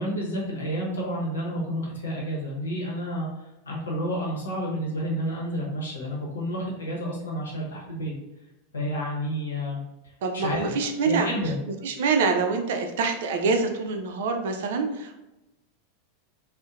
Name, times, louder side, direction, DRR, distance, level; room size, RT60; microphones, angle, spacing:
voice 1, 0.0-8.1 8.7-9.8 10.3-10.7 11.0-11.6, equal, 80° left, -3 dB, 0.8 m, -30 dB
voice 2, 10.2-11.3 11.8-15.2, right 4 dB, 65° right, 5 dB, 0.4 m, -25 dB
2.7 x 2.1 x 2.3 m, 0.96 s
figure-of-eight pair, 90°, 0 cm